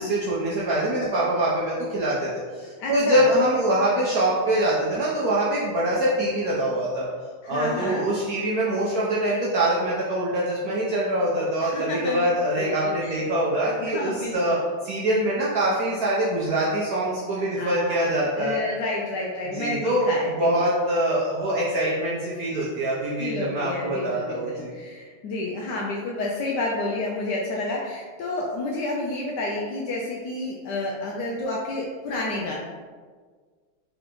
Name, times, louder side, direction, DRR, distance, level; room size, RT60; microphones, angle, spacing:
voice 1, 0.0-7.1 7.4-14.6 14.8-18.6 19.5-20.1 20.4-24.7, right 1 dB, 70° right, -6 dB, 0.9 m, -24 dB
voice 2, 2.8-3.3 7.4-8.1 11.6-12.3 12.6-13.2 13.8-14.6 17.4-20.5 23.2-32.5, left 2 dB, 75° left, -2 dB, 1.0 m, -30 dB
3.7 x 3.4 x 3.6 m, 1.6 s
omnidirectional pair, 2.3 m